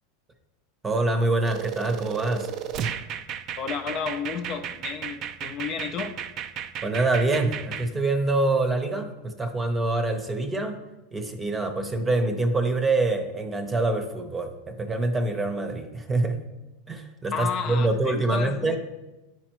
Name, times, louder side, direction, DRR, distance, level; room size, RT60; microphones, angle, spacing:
voice 1, 0.8-2.5 6.8-10.8 11.1-16.4 16.9-18.8, right 2 dB, 20° right, 7 dB, 0.8 m, -25 dB
sound 1, 1.4-7.9, right 8 dB, 45° right, 0.4 m, -34 dB
voice 2, 3.6-6.1 17.3-18.8, left 6 dB, 45° left, 6 dB, 0.6 m, -32 dB
9.8 x 4.4 x 3.0 m, 1.0 s
hypercardioid pair, 115°, 0 cm